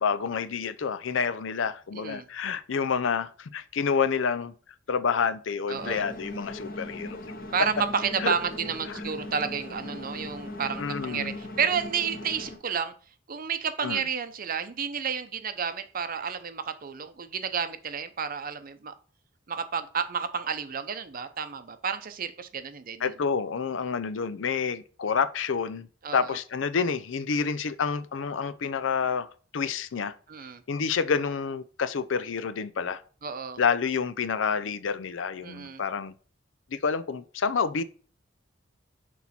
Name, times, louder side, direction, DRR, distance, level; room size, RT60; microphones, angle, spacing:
voice 1, 0.0-4.5 4.9-7.2 8.2-8.3 10.8-11.4 13.8-14.0 23.0-25.9 26.1-30.1 30.7-33.0 33.6-36.1 36.7-37.8, left 6 dB, 80° left, 0.5 m, -28 dB
voice 2, 1.9-2.3 5.7-6.0 7.5-12.9 13.3-18.9 19.5-23.1 26.0-26.3 30.3-30.6 33.2-33.6 35.4-35.8, right 6 dB, 50° right, 0.7 m, -31 dB
sound 1, 5.7-12.6, left 1 dB, 50° left, 1.1 m, -39 dB
6.2 x 4.2 x 4.3 m
head